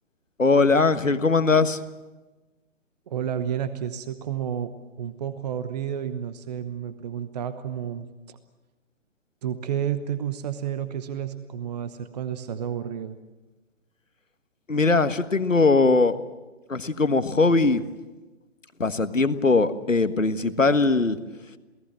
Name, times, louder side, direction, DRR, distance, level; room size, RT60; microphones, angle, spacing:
voice 1, 0.4-1.8 14.7-16.2 16.7-17.8 18.8-21.2, left 3 dB, 85° left, 11 dB, 1.5 m, -20 dB
voice 2, 3.1-4.7 5.0-8.4 9.4-13.2, right 9 dB, 35° right, 12 dB, 1.0 m, -31 dB
28.0 x 18.0 x 7.6 m, 1.2 s
figure-of-eight pair, 135°, 38 cm